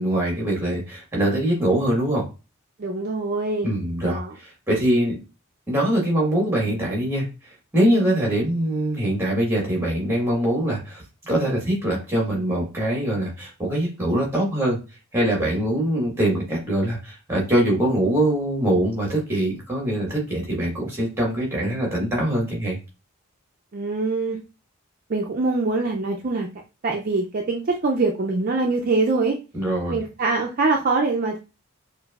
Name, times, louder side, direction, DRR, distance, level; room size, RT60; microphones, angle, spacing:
voice 1, 0.0-2.2 3.6-5.2 5.7-7.2 7.7-14.8 15.1-22.8 29.5-30.0, right 1 dB, 10° right, -2 dB, 1.3 m, -23 dB
voice 2, 2.8-3.7 4.1-4.3 23.7-24.4 25.1-26.5 26.8-29.4 29.9-31.4, right 3 dB, 40° right, 1 dB, 0.4 m, -23 dB
5.9 x 2.5 x 2.3 m, 0.30 s
head